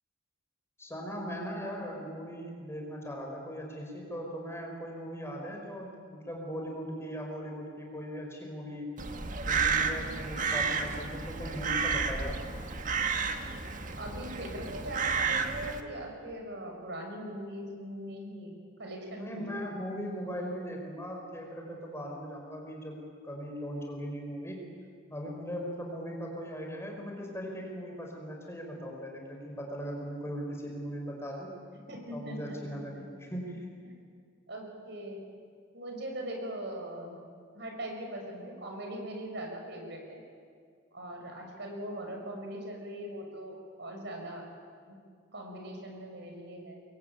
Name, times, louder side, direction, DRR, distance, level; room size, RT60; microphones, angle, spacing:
voice 1, 0.8-8.9 9.5-12.4 19.2-24.6 25.1-31.6 32.1-33.7, equal, 15° left, 1 dB, 5.0 m, -39 dB
Crow, 9.0-15.8, right 5 dB, 40° right, 1.7 m, -31 dB
voice 2, 14.0-19.8 31.9-33.0 33.8-33.9 34.5-35.2 35.7-37.2 37.5-40.2 40.9-44.4 44.9-45.0 45.3-46.8, right 1 dB, 60° right, 2 dB, 6.4 m, -41 dB
27.5 x 22.5 x 9.2 m, 2.1 s
head